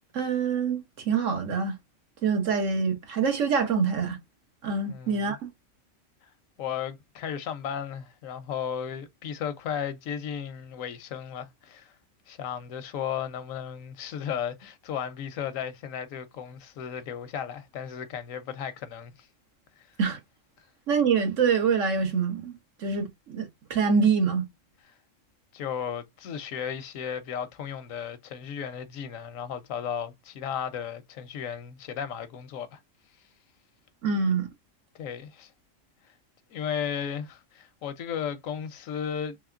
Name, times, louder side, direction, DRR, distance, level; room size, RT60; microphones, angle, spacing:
voice 1, 0.1-1.8 2.2-4.2 4.6-5.5 20.0-20.2 20.9-22.5 22.8-24.5 34.0-34.5, right 5 dB, 75° right, 1.4 m, -25 dB
voice 2, 4.9-5.4 6.6-11.9 12.3-19.3 19.8-19.9 25.5-32.8 34.9-35.5 36.5-39.4, left 8 dB, 90° left, 1.1 m, -35 dB
3.5 x 3.2 x 2.4 m
omnidirectional pair, 1.3 m